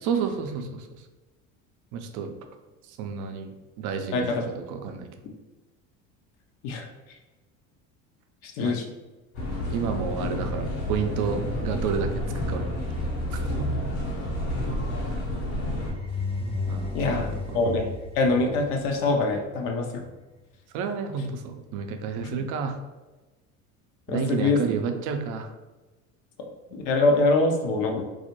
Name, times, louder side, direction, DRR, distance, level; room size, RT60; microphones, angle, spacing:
voice 1, 0.0-1.0 1.9-2.4 2.9-5.1 8.6-8.8 9.7-13.8 14.3-14.4 16.7-17.6 20.7-22.8 24.1-25.5, right 6 dB, 50° right, 6 dB, 0.4 m, -31 dB
voice 2, 4.1-4.4 6.6-6.9 8.4-8.8 16.9-17.3 17.5-17.9 18.2-19.9 22.2-22.3 24.1-24.6 26.7-28.0, left 3 dB, 60° left, 2 dB, 0.6 m, -24 dB
sound 1, 9.3-15.9, left 1 dB, 75° left, 1.0 m, -30 dB
sound 2, 15.8-19.7, left 3 dB, 15° left, 0.3 m, -33 dB
2.3 x 2.1 x 2.8 m, 1.1 s
hypercardioid pair, 75°, 41 cm